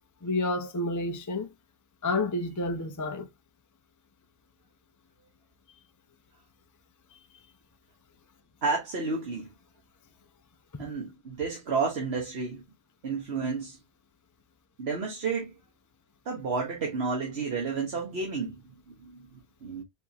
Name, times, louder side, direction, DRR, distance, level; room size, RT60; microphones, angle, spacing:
voice 1, 0.2-1.5 2.0-3.3 7.1-7.4 10.7-10.8, left 2 dB, 25° left, 0.4 m, -30 dB
voice 2, 8.6-9.5 10.8-12.6 13.0-13.8 14.8-15.5 16.2-19.8, right 4 dB, 75° right, 1.4 m, -31 dB
4.7 x 3.6 x 2.8 m
omnidirectional pair, 1.1 m